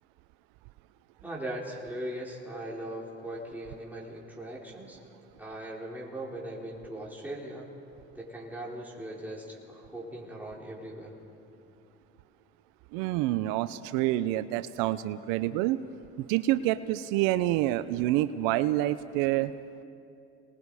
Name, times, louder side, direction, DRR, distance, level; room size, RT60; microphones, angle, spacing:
voice 1, 1.2-5.0 5.4-7.7 8.1-11.1, right 1 dB, 5° right, -5 dB, 4.2 m, -39 dB
voice 2, 12.9-15.8 16.2-19.5, right 15 dB, 75° right, 14 dB, 0.6 m, -27 dB
27.5 x 20.0 x 4.9 m, 2.7 s
supercardioid pair, 75°, 34 cm